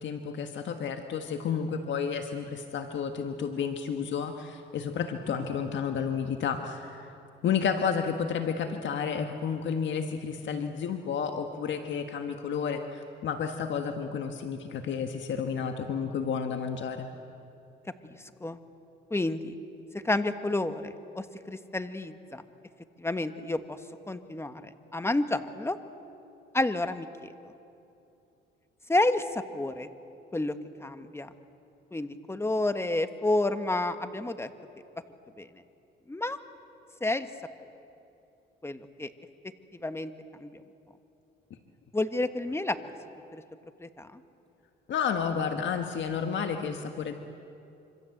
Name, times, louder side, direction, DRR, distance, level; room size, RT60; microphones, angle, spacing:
voice 1, 0.0-7.1 7.4-17.1 44.9-47.1, left 6 dB, 70° left, 6 dB, 1.6 m, -31 dB
voice 2, 18.0-18.6 19.1-19.6 20.0-22.4 23.0-23.8 24.1-25.8 26.5-27.5 28.9-29.9 30.3-30.5 30.8-31.3 31.9-34.5 35.4-35.5 36.1-36.4 37.0-37.3 38.6-39.1 39.8-40.1 40.4-40.5 41.9-42.8 43.3-43.4 43.8-44.2, left 2 dB, 10° left, 10 dB, 1.4 m, -30 dB
26.0 x 26.0 x 7.9 m, 2.8 s
cardioid pair, 90°, 20 cm